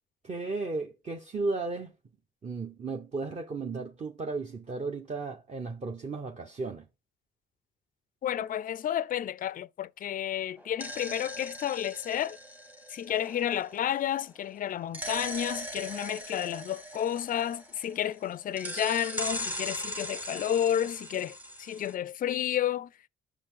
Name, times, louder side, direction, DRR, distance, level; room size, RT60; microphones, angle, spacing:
voice 1, 0.2-1.9 2.4-6.8, right 3 dB, 35° right, 0.9 m, -34 dB
voice 2, 8.2-12.4 12.9-22.9, left 10 dB, 45° left, 0.4 m, -31 dB
sound 1, 10.6-14.2 14.9-18.1 18.6-21.9, equal, 10° right, 0.9 m, -40 dB
6.0 x 5.1 x 5.6 m
cardioid pair, 90°, 20 cm